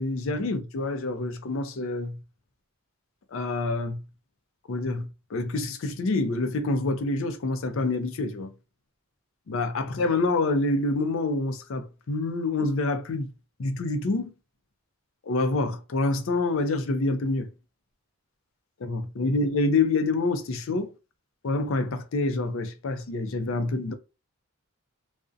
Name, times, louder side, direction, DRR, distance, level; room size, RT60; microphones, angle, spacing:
voice 1, 0.0-2.2 3.3-4.0 4.7-8.5 9.5-13.3 13.6-14.3 15.3-17.5 18.8-20.9 21.4-23.9, left 2 dB, 60° left, 0.4 m, -27 dB
2.4 x 2.1 x 2.5 m
head